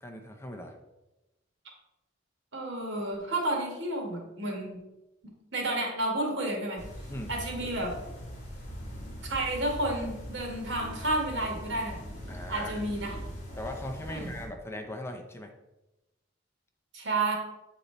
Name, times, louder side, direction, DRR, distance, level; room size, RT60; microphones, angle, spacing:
voice 1, 0.0-0.8 7.1-7.3 12.3-12.9 13.6-15.5, left 1 dB, 15° left, 3 dB, 0.6 m, -39 dB
voice 2, 2.5-4.8 5.5-6.8 7.3-7.9 9.3-12.0 12.5-13.1 14.1-14.3 16.9-17.3, right 2 dB, 65° right, 0 dB, 1.9 m, -31 dB
sound 1, 6.8-14.5, equal, 40° left, 2.3 m, -41 dB
8.3 x 4.2 x 4.0 m, 0.97 s
head